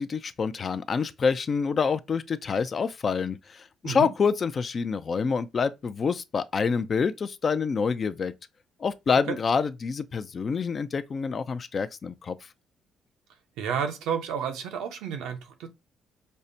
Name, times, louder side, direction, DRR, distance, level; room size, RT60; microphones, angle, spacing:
voice 1, 0.0-8.3 8.8-12.4, left 5 dB, 45° left, 0.4 m, -27 dB
voice 2, 13.6-15.7, right 7 dB, 90° right, 0.7 m, -31 dB
5.4 x 2.1 x 2.6 m
cardioid pair, 85°, 0 cm